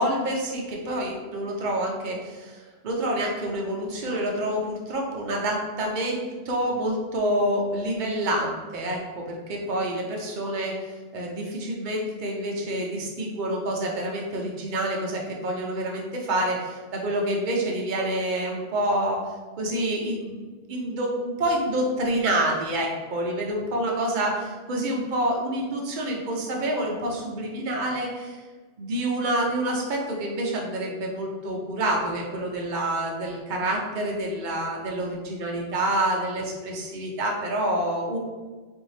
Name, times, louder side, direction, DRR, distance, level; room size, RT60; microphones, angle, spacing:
voice 1, 0.0-10.7 11.1-19.2 19.6-28.4 28.8-38.2, right 1 dB, 55° right, -1 dB, 0.8 m, -27 dB
4.4 x 2.6 x 3.2 m, 1.4 s
omnidirectional pair, 1.0 m